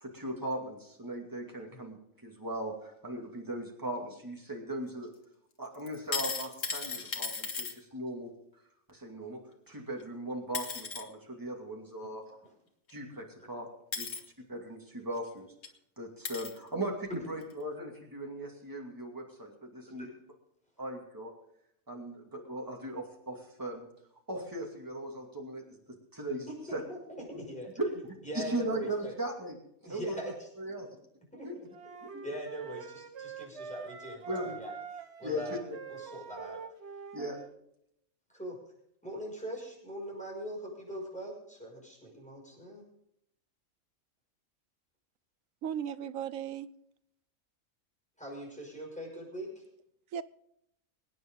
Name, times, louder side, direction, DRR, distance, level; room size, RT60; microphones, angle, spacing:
voice 1, 0.0-2.0 2.2-5.1 5.6-8.3 8.9-9.4 9.7-12.2 12.9-13.7 14.0-14.1 14.5-15.5 16.0-20.1 20.8-21.3 21.9-23.9 24.3-26.5 26.7-26.8 27.8-27.9 28.3-29.6 29.9-30.3 30.6-30.9 31.4-31.5 32.0-32.1 34.3-34.6 35.2-35.6 37.1-37.4, right 1 dB, 15° right, 0 dB, 2.5 m, -38 dB
sound 1, 5.9-7.7 10.0-10.1 10.5-11.0 12.9-13.0 13.9-14.2 15.2-15.3 15.6-15.7 16.2-16.6 17.4-17.5, left 5 dB, 65° left, 1.8 m, -36 dB
voice 2, 26.5-27.7 28.2-29.2 29.8-30.5 31.3-31.9 32.2-34.7 35.2-35.6 35.9-36.6 38.3-38.6 39.0-42.8 48.2-49.6, equal, 5° left, -2 dB, 6.1 m, -42 dB
sound 2, 31.7-37.5, right 6 dB, 55° right, 1.2 m, -44 dB
voice 3, 45.6-46.7 50.1-50.2, right 9 dB, 75° right, 15 dB, 1.0 m, -36 dB
25.0 x 9.3 x 3.8 m, 0.75 s
omnidirectional pair, 1.4 m